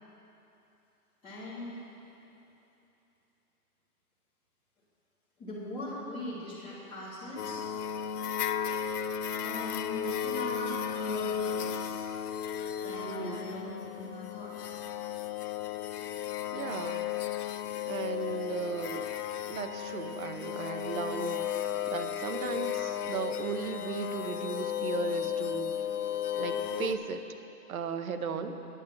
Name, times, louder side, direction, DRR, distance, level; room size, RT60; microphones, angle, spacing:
voice 1, 1.2-1.8 5.4-7.6 9.4-12.1 12.8-14.7 28.3-28.7, left 1 dB, 5° left, -13 dB, 0.7 m, -41 dB
sound 1, 7.4-26.9, left 9 dB, 70° left, 0.7 m, -34 dB
voice 2, 13.0-13.5 16.5-17.1 17.9-19.1 19.5-25.7 26.4-27.2 27.7-28.5, right 6 dB, 60° right, 8 dB, 0.8 m, -36 dB
9.4 x 7.2 x 7.3 m, 2.9 s
hypercardioid pair, 160°, 47 cm